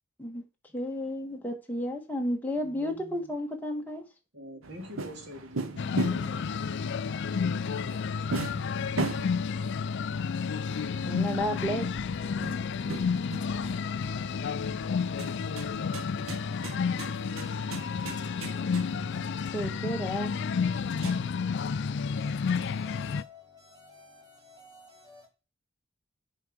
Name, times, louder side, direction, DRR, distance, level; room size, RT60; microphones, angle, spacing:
voice 1, 0.7-4.0 11.0-11.9 19.5-20.3, equal, 10° left, 1.6 m, -32 dB
voice 2, 2.5-3.3 4.3-5.7, equal, 55° right, 2.6 m, -45 dB
sound 1, 4.6-21.3, right 3 dB, 80° right, 0.9 m, -40 dB
sound 2, 5.8-23.2, left 6 dB, 55° left, 0.4 m, -31 dB
voice 3, 22.1-25.3, left 5 dB, 20° right, 2.8 m, -51 dB
9.2 x 4.5 x 5.1 m
head